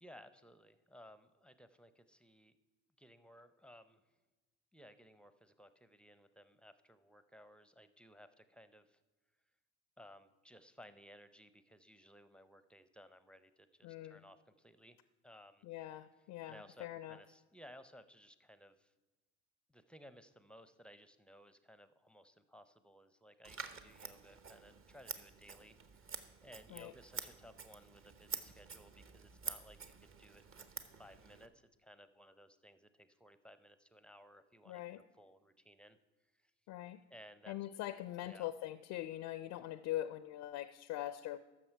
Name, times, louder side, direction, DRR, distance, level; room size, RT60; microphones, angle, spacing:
voice 1, 0.0-2.6 3.0-4.2 4.7-9.0 10.0-15.0 15.2-15.7 16.5-18.9 19.7-30.7 31.0-36.5 37.1-37.5 38.2-38.5, equal, 5° left, 12 dB, 0.5 m, -59 dB
voice 2, 13.8-14.2 15.6-17.2 26.7-26.9 34.7-35.0 36.7-37.0 37.5-41.4, left 14 dB, 65° left, 14 dB, 0.5 m, -43 dB
Scissors, 23.4-31.5, right 5 dB, 40° right, 0.9 m, -48 dB
14.0 x 6.1 x 4.6 m, 1.2 s
hypercardioid pair, 70°, 35 cm